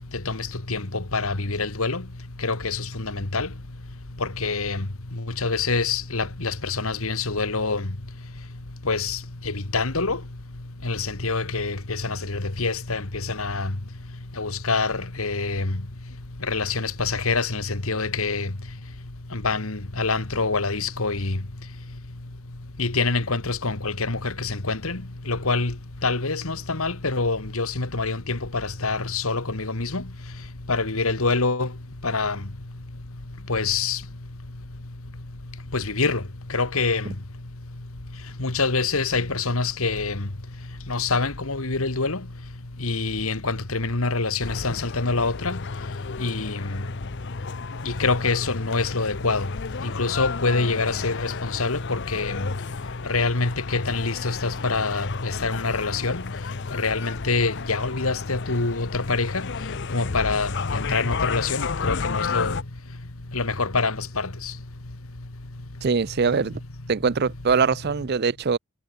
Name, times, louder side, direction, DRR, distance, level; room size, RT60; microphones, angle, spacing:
voice 1, 0.7-2.0 2.4-3.5 4.2-4.8 5.4-7.8 8.9-9.2 9.7-10.2 10.8-13.0 13.4-13.7 14.4-15.7 16.5-18.5 19.3-21.3 22.8-25.0 25.3-25.7 26.0-28.4 28.8-30.0 30.7-31.7 32.0-32.4 33.5-34.0 35.7-36.2 36.5-37.1 38.4-40.2 40.9-42.2 42.8-45.6 46.2-46.6 48.0-49.5 50.0-52.4 53.1-56.2 56.8-59.4 59.9-62.6 63.3-64.1, left 3 dB, 70° left, 1.9 m, -25 dB
sound 1, 44.4-62.6, left 5 dB, 50° left, 0.6 m, -32 dB
voice 2, 65.8-66.6 66.9-68.6, right 5 dB, 45° right, 0.5 m, -22 dB
head